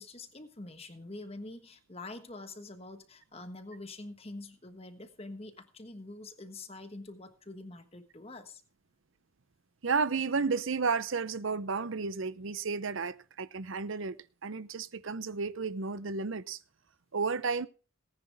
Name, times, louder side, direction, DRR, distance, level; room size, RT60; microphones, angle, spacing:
voice 1, 0.0-8.6, left 2 dB, 30° left, 1.3 m, -45 dB
voice 2, 9.8-14.2 14.4-16.6 17.1-17.7, right 4 dB, 70° right, 0.7 m, -32 dB
18.5 x 10.0 x 3.5 m
head